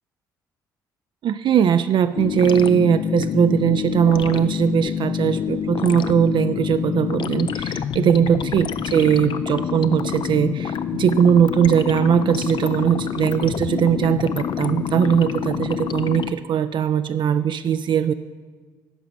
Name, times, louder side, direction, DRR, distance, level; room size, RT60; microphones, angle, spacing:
voice 1, 1.2-18.1, right 8 dB, 50° right, 11 dB, 0.3 m, -20 dB
sound 1, 2.2-16.3, left 8 dB, 50° left, 0.4 m, -27 dB
11.5 x 5.0 x 6.3 m, 1.5 s
hypercardioid pair, 50°, 10 cm